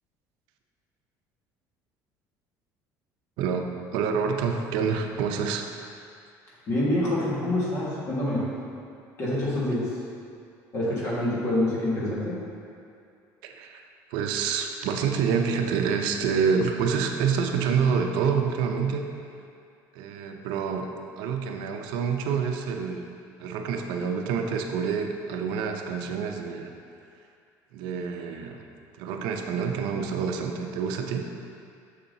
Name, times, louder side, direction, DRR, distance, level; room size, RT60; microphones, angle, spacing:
voice 1, 3.4-5.6 13.4-13.8 14.1-19.1 19.9-20.9 21.2-23.1 23.4-26.7 27.7-28.7 29.0-31.2, right 6 dB, 75° right, 4 dB, 0.5 m, -27 dB
voice 2, 6.7-8.4 9.2-10.0 10.7-12.4, left 1 dB, 35° left, -6 dB, 1.6 m, -26 dB
6.9 x 6.8 x 2.7 m, 2.4 s
cardioid pair, 165°, 8 cm